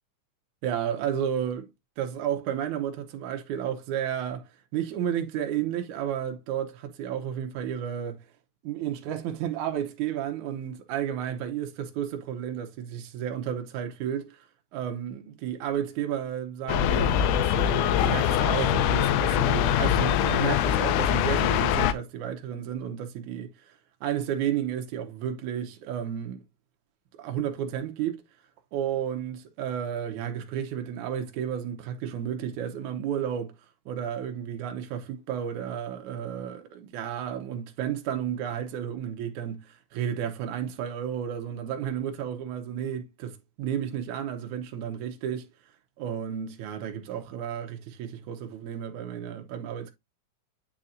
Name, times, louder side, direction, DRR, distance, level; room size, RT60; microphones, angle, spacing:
voice 1, 0.6-1.7 2.0-4.4 4.7-8.2 8.6-14.4 14.7-23.7 24.0-26.4 27.2-28.2 28.7-33.5 33.9-45.5 46.0-49.9, right 9 dB, 80° right, 2.4 m, -32 dB
sound 1, 16.7-21.9, left 10 dB, 85° left, 2.1 m, -23 dB
9.3 x 4.3 x 2.6 m
omnidirectional pair, 3.4 m